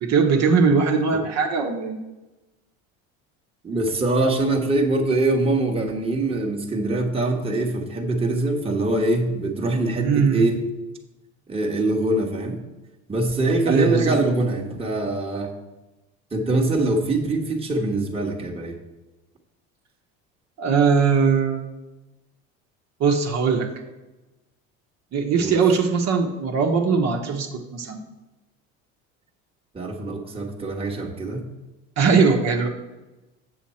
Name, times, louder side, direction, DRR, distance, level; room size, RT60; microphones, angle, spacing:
voice 1, 0.0-2.0 10.0-10.4 13.7-14.1 20.6-21.6 23.0-23.7 25.1-28.0 32.0-32.7, right 5 dB, 55° right, 2 dB, 1.2 m, -20 dB
voice 2, 3.6-10.6 11.5-12.6 13.1-15.5 16.3-18.8 25.4-25.6 29.7-31.4, right 2 dB, 20° right, 1 dB, 1.4 m, -23 dB
7.6 x 7.0 x 4.3 m, 1.0 s
supercardioid pair, 95°, 32 cm